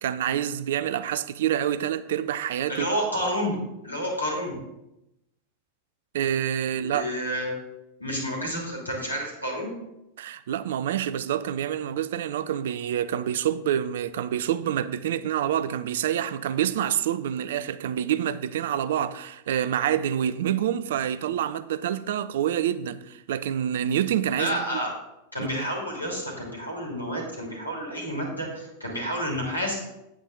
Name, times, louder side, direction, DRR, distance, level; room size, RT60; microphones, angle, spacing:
voice 1, 0.0-2.9 6.1-7.1 10.2-24.8 25.4-25.7, right 10 dB, 60° right, 0.4 m, -27 dB
voice 2, 2.7-3.6 3.8-4.6 6.8-7.5 8.0-9.7 24.3-24.9 25.3-29.8, equal, 85° left, 2.7 m, -30 dB
9.1 x 8.4 x 3.8 m
figure-of-eight pair, 90°, 0 cm